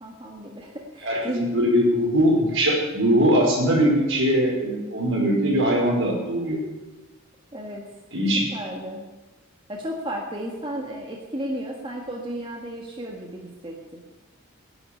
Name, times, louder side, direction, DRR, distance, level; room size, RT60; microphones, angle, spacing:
voice 1, 0.0-1.5 7.5-7.8 8.5-9.0 9.7-14.0, right 1 dB, 25° right, 0 dB, 1.5 m, -33 dB
voice 2, 1.0-6.6 8.1-8.4, equal, 70° right, -1 dB, 5.0 m, -21 dB
10.5 x 9.8 x 9.7 m, 1.2 s
head